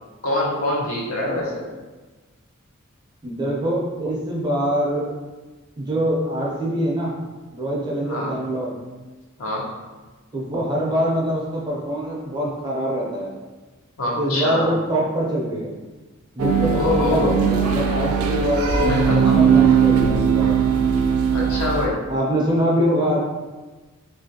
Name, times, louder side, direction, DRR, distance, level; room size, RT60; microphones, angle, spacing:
voice 1, 0.2-1.6 8.1-8.3 9.4-9.6 14.0-14.7 16.7-17.3 18.9-19.4 21.3-22.0, left 2 dB, 80° left, -3 dB, 0.7 m, -24 dB
voice 2, 3.2-5.1 5.8-7.1 7.5-8.7 10.3-13.3 14.0-15.7 16.4-20.6 22.1-23.2, right 1 dB, 20° right, -4 dB, 0.5 m, -24 dB
sound 1, 16.4-21.9, right 6 dB, 90° right, 0.4 m, -19 dB
3.2 x 2.5 x 2.7 m, 1.2 s
head